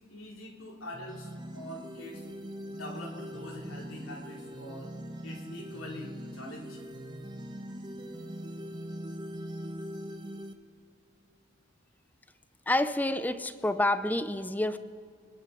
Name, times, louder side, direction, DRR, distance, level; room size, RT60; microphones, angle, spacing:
voice 1, 0.1-2.2 2.7-4.9 5.2-6.8, left 1 dB, 80° left, -1 dB, 3.2 m, -44 dB
sound 1, 0.9-10.5, equal, 20° right, 0.9 m, -41 dB
voice 2, 12.7-14.8, left 1 dB, 10° left, 13 dB, 0.5 m, -28 dB
25.5 x 11.0 x 4.8 m, 2.3 s
head